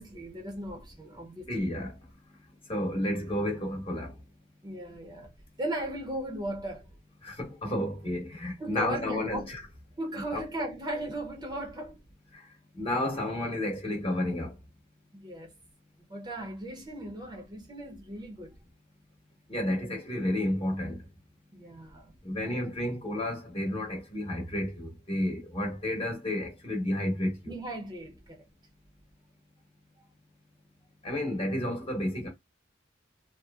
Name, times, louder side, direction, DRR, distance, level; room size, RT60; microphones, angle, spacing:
voice 1, 0.0-1.7 4.6-6.9 8.6-9.5 10.0-12.0 15.1-15.5 16.1-18.6 21.5-22.1 27.5-28.4, right 1 dB, 25° right, 0.6 m, -37 dB
voice 2, 1.5-1.9 2.7-4.1 7.2-9.6 10.3-10.4 12.7-14.5 19.5-21.0 22.2-27.5 31.0-32.3, left 1 dB, 30° left, 1.0 m, -31 dB
2.8 x 2.4 x 2.3 m
head